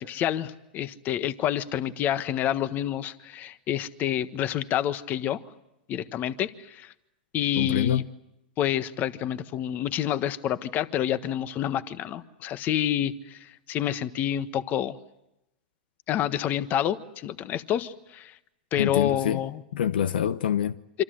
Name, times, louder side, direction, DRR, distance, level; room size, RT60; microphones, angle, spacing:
voice 1, 0.0-5.4 5.9-6.9 7.3-8.0 8.6-15.0 16.1-18.3 18.7-19.6 20.9-21.0, left 11 dB, 35° left, 1.4 m, -28 dB
voice 2, 7.6-8.1 18.8-19.4 19.7-20.8, left 9 dB, 80° left, 0.9 m, -26 dB
27.0 x 26.0 x 7.9 m
hypercardioid pair, 115°, 5 cm